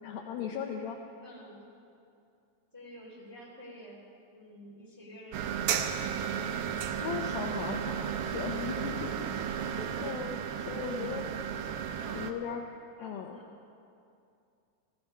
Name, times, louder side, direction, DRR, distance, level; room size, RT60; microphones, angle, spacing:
voice 1, 0.0-1.0 7.0-9.2 9.5-11.3 12.1-12.7 13.0-13.4, left 6 dB, 75° left, 2 dB, 2.3 m, -38 dB
voice 2, 1.2-1.6 2.7-4.0 4.3-6.0 11.0-11.2 12.0-12.4 13.0-13.5, equal, 5° right, -5 dB, 2.5 m, -50 dB
sound 1, 5.3-12.3, right 8 dB, 75° right, 2.5 m, -34 dB
16.5 x 14.0 x 5.4 m, 2.5 s
omnidirectional pair, 4.8 m